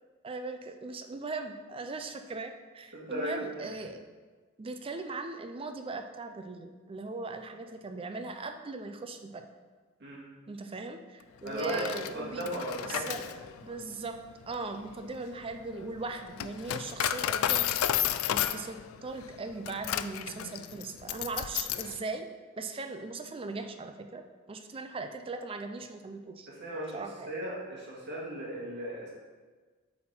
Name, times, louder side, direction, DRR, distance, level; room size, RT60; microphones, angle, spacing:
voice 1, 0.2-4.0 4.6-9.5 10.5-12.5 12.9-13.3 13.6-14.2 14.5-17.6 18.3-22.3 22.6-26.5 26.9-27.3, right 3 dB, 25° right, 7 dB, 0.4 m, -39 dB
voice 2, 2.9-3.4 10.0-10.2 11.4-13.4 26.5-29.1, right 1 dB, 55° right, -5 dB, 1.9 m, -36 dB
Coin (dropping), 11.5-22.0, left 11 dB, 85° left, 0.3 m, -33 dB
7.4 x 4.3 x 4.4 m, 1.4 s
head